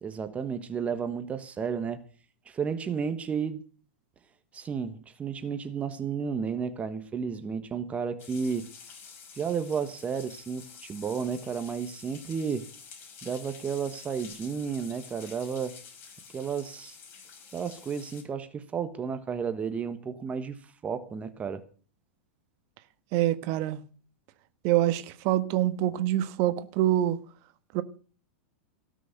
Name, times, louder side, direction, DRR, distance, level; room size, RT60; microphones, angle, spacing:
voice 1, 0.0-2.0 2.5-3.6 4.5-8.7 9.3-12.7 13.2-15.8 16.3-17.0 17.5-21.6, right 6 dB, 20° right, 1.3 m, -32 dB
sound 1, 8.2-18.2, left 6 dB, 35° left, 5.5 m, -49 dB
voice 2, 23.1-23.8 24.6-27.2 27.7-27.8, right 13 dB, 45° right, 1.4 m, -25 dB
18.0 x 6.4 x 9.3 m
figure-of-eight pair, 95°, 6 cm